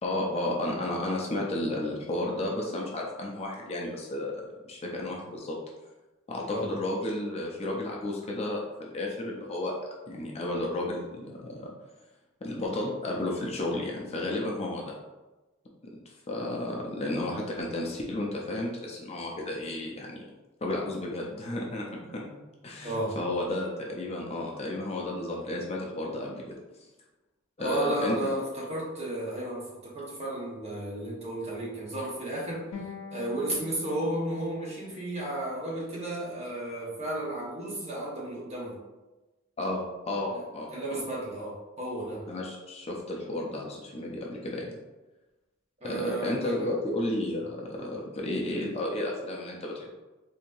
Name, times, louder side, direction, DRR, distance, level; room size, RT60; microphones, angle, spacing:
voice 1, 0.0-5.6 6.3-9.7 10.1-11.7 12.4-14.9 16.3-20.2 20.6-22.2 22.6-26.4 27.6-28.2 39.6-41.0 42.3-44.8 45.8-49.9, left 1 dB, 30° left, -1 dB, 0.5 m, -32 dB
voice 2, 22.8-23.2 27.6-32.7 33.1-38.8 40.7-42.2 45.8-46.7, right 1 dB, 35° right, -5 dB, 1.1 m, -33 dB
sound 1, 32.7-35.8, left 4 dB, 90° left, 0.7 m, -45 dB
4.4 x 2.7 x 2.6 m, 1.1 s
head